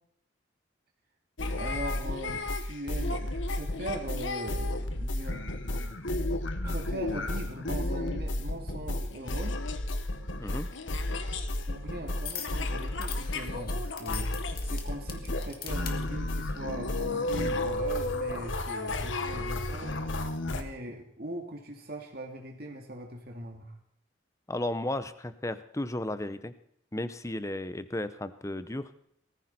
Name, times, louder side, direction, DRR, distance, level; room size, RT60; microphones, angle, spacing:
sound 1, 1.4-20.6, left 1 dB, 75° left, 1.4 m, -32 dB
voice 1, 1.5-5.4 6.6-9.6 11.7-20.0 20.5-23.7, right 1 dB, 50° right, 2 dB, 2.2 m, -40 dB
sound 2, 12.3-12.6 13.0-16.0 16.8-17.0, left 8 dB, 50° left, 2.0 m, -41 dB
voice 2, 24.5-26.5 26.9-28.9, left 1 dB, 15° left, 13 dB, 0.7 m, -34 dB
19.0 x 14.5 x 4.2 m, 0.69 s
head